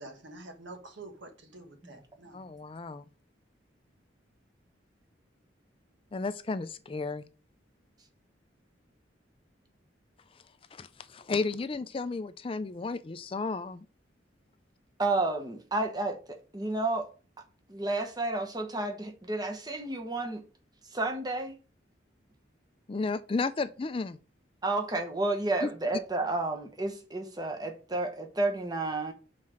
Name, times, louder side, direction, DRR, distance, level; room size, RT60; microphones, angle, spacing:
voice 1, 0.0-2.4, right 2 dB, 75° right, 1.6 m, -47 dB
voice 2, 2.3-3.0 6.1-7.2 10.8-10.9 11.1-13.8 22.9-24.2 25.6-25.7, left 3 dB, 30° left, 0.3 m, -33 dB
voice 3, 15.0-16.2 16.5-17.1 17.7-20.4 20.9-21.6 24.6-29.1, right 2 dB, 20° right, 1.0 m, -31 dB
5.7 x 4.3 x 6.2 m
head